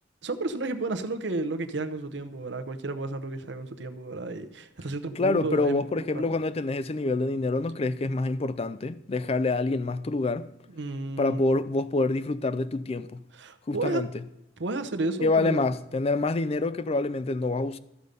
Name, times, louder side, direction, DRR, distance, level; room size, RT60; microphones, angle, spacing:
voice 1, 0.2-5.8 6.1-6.3 10.7-11.5 13.3-14.1 14.6-15.7, right 2 dB, 70° right, 0.8 m, -32 dB
voice 2, 5.2-10.5 11.2-13.2 13.7-14.1 15.2-17.8, left 2 dB, 30° left, 0.4 m, -26 dB
13.5 x 5.2 x 6.7 m
head